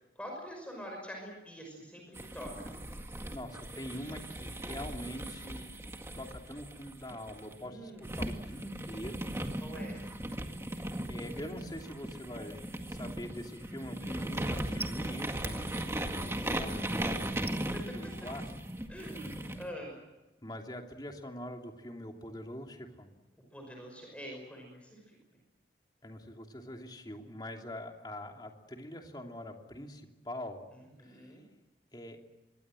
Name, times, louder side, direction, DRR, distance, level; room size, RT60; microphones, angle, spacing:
voice 1, 0.2-2.7 7.6-8.2 9.6-10.0 16.1-16.6 17.6-18.1 18.9-20.0 23.5-25.2 30.7-31.4, equal, 5° left, 1 dB, 5.7 m, -45 dB
sound 1, 2.1-7.5 8.0-19.7, right 1 dB, 15° right, 1.9 m, -38 dB
voice 2, 3.3-5.6 6.1-9.3 11.1-17.2 17.7-18.4 18.7-18.8 19.1-19.3 20.4-23.1 26.0-30.7 31.0-31.3 31.9-32.2, left 1 dB, 25° left, 3 dB, 2.9 m, -44 dB
25.5 x 23.5 x 7.7 m, 1.1 s
head